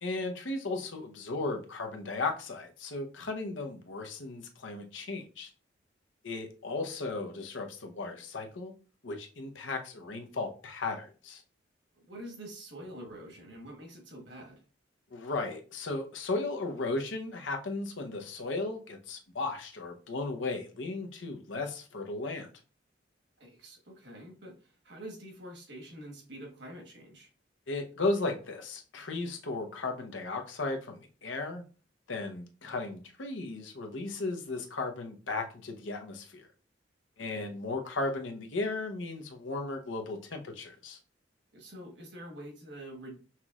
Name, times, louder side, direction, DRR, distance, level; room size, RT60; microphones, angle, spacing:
voice 1, 0.0-5.5 6.2-8.7 9.0-11.4 15.1-22.5 27.7-31.6 32.1-36.5 37.2-41.0, left 3 dB, 85° left, 4 dB, 0.8 m, -35 dB
voice 2, 11.9-14.6 23.4-27.3 37.3-37.5 41.5-43.2, right 1 dB, 65° right, 1 dB, 1.3 m, -46 dB
5.8 x 3.0 x 2.4 m, 0.36 s
head